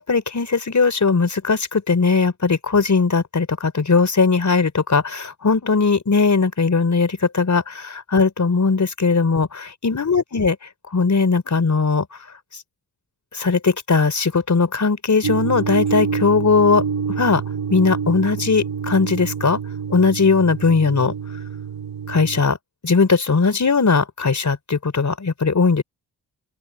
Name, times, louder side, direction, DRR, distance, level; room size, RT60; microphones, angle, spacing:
voice 1, 0.0-10.6 10.9-12.2 13.3-16.8 17.1-17.4 17.7-19.6 19.9-21.1 22.1-22.6 22.8-25.8, left 4 dB, 45° left, 4.5 m, -19 dB
sound 1, 15.2-22.4, right 6 dB, 65° right, 1.5 m, -27 dB
open air
supercardioid pair, 45°, 39 cm